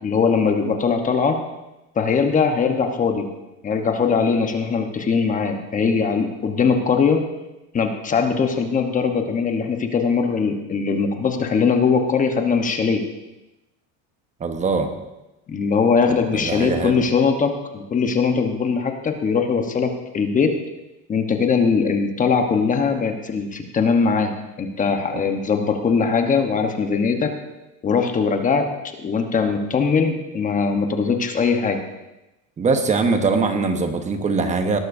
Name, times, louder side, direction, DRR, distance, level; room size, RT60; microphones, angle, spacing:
voice 1, 0.0-1.4 1.9-3.3 3.6-7.2 7.7-13.0 15.5-20.6 21.1-27.3 27.8-31.8, left 5 dB, 20° left, 5 dB, 1.0 m, -21 dB
voice 2, 14.4-14.9 16.3-17.0 32.6-34.8, right 4 dB, 20° right, 6 dB, 1.0 m, -22 dB
19.0 x 12.0 x 2.6 m, 0.98 s
cardioid pair, 150°, 38 cm